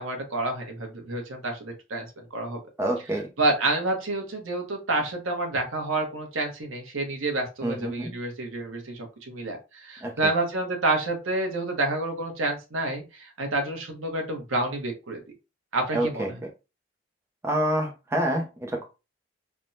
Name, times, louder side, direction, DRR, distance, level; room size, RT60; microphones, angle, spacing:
voice 1, 0.0-2.6 3.4-15.2 15.7-16.2, right 2 dB, 85° right, 3 dB, 0.9 m, -29 dB
voice 2, 2.8-3.3 7.6-8.1 10.0-10.3 15.9-16.3 17.4-18.8, right 1 dB, 15° right, 1 dB, 0.5 m, -27 dB
3.4 x 2.1 x 2.6 m, 0.28 s
head